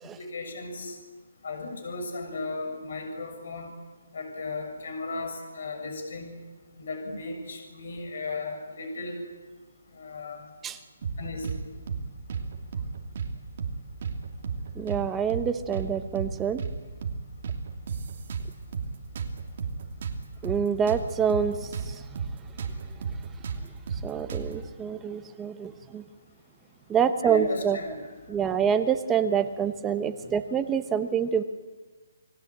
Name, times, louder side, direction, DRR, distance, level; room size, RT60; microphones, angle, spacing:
voice 1, 0.0-1.0 1.4-3.7 4.1-6.4 6.8-9.2 9.9-10.5 11.2-11.6 27.2-28.1, left 3 dB, 50° left, 5 dB, 7.1 m, -36 dB
sound 1, 11.0-11.6 11.9-12.0 12.3-13.3 13.6-13.7 14.0-15.0 15.3-15.5 15.7-16.7 17.0-17.2 17.4-18.9 19.2-21.9 22.2-22.3 22.6-24.6, right 6 dB, 40° right, 2.8 m, -33 dB
voice 2, 14.7-16.6 20.4-22.2 24.0-26.0 26.9-27.8 28.3-31.4, right 7 dB, 10° right, 8 dB, 0.9 m, -27 dB
29.5 x 20.0 x 8.7 m, 1.3 s
hypercardioid pair, 175°, 0 cm